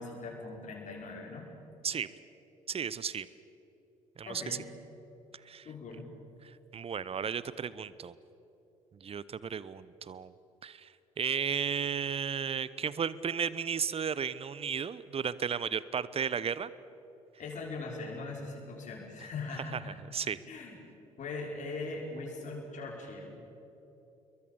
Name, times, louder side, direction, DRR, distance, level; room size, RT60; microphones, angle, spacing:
voice 1, 0.0-1.5 4.3-4.7 5.6-6.1 17.4-20.0 20.5-20.7 21.2-23.5, left 3 dB, 45° left, -1 dB, 5.8 m, -40 dB
voice 2, 2.7-3.3 4.2-4.6 5.4-5.7 6.4-8.1 9.0-10.3 10.6-16.7 19.7-19.8 20.1-20.4, right 7 dB, 35° right, 17 dB, 1.0 m, -34 dB
27.0 x 22.5 x 7.1 m, 3.0 s
figure-of-eight pair, 50°, 18 cm